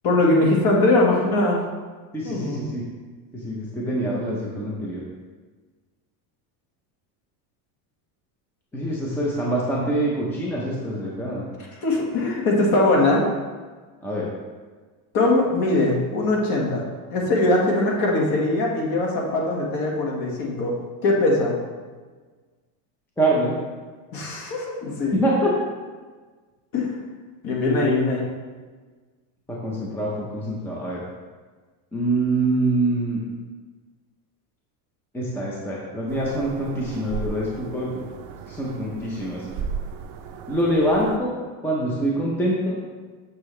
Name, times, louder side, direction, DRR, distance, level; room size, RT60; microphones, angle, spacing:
voice 1, 0.0-1.7 2.2-2.6 11.8-13.3 15.1-16.8 17.1-20.7 21.0-21.5 24.1-25.2 26.7-27.0 27.4-28.2, left 2 dB, 45° left, -2 dB, 1.8 m, -21 dB
voice 2, 2.1-2.8 3.4-5.0 8.7-11.4 14.0-14.3 23.2-23.5 25.1-25.5 27.6-27.9 29.5-31.0 31.9-33.2 35.1-37.9 38.5-39.4 40.5-41.3 41.6-42.8, right 1 dB, 5° left, -4 dB, 0.7 m, -25 dB
sound 1, 36.1-41.2, right 6 dB, 45° right, 0.6 m, -35 dB
6.9 x 6.7 x 3.2 m, 1.4 s
cardioid pair, 160°, 48 cm